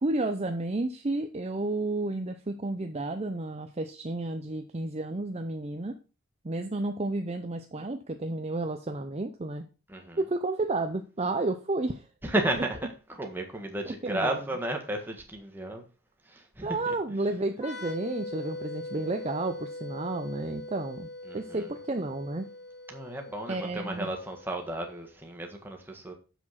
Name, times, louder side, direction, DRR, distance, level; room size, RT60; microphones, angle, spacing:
voice 1, 0.0-6.0 6.4-9.7 10.2-12.1 13.9-14.4 16.6-21.1 21.3-22.5 23.5-24.1, right 2 dB, 30° right, 0.6 m, -31 dB
voice 2, 12.2-12.8 13.1-15.8 16.3-16.9 21.3-21.7 22.9-26.1, right 1 dB, 10° right, 1.6 m, -33 dB
sound 1, 17.5-25.0, left 2 dB, 75° left, 3.1 m, -42 dB
6.9 x 6.2 x 5.7 m
head